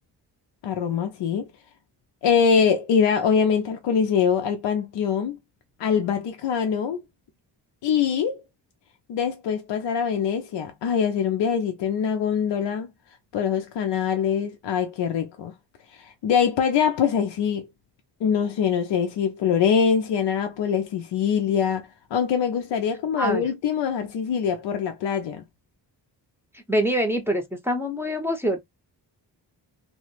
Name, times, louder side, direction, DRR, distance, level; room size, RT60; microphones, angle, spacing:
voice 1, 0.6-1.5 2.2-5.4 5.8-7.0 7.8-8.4 9.1-12.9 13.3-15.5 15.9-17.7 18.2-25.4, left 7 dB, 75° left, 0.5 m, -23 dB
voice 2, 26.7-28.6, equal, 5° right, 0.6 m, -25 dB
2.1 x 2.0 x 3.0 m
cardioid pair, 60°, 44 cm